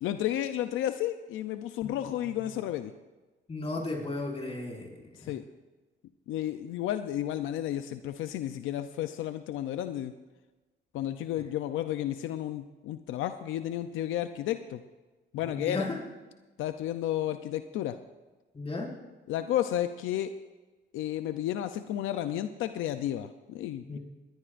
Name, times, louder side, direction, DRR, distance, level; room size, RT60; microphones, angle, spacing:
voice 1, 0.0-2.9 5.3-5.4 6.3-10.1 10.9-14.8 15.3-15.9 16.6-18.0 19.3-20.3 20.9-24.0, left 12 dB, 90° left, 9 dB, 0.6 m, -32 dB
voice 2, 1.8-2.4 3.5-4.9 5.2-5.3 15.4-16.0 18.5-18.9 23.9-24.0, left 2 dB, 30° left, -3 dB, 5.6 m, -35 dB
20.5 x 19.5 x 2.6 m, 1.2 s
cardioid pair, 90°, 20 cm